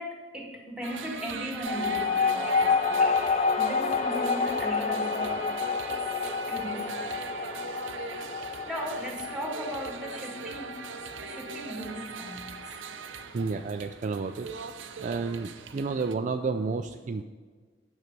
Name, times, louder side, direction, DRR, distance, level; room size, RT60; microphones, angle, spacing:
voice 1, 0.0-5.5 6.5-6.9 8.6-10.8 11.2-12.8, equal, 5° right, 0 dB, 1.5 m, -37 dB
sound 1, 0.8-16.1, right 6 dB, 75° right, 0.7 m, -40 dB
sound 2, 1.7-12.6, left 5 dB, 35° left, 0.3 m, -29 dB
voice 2, 13.3-14.5 15.0-17.2, right 4 dB, 40° right, 7 dB, 0.3 m, -31 dB
9.4 x 6.3 x 5.2 m, 1.5 s
head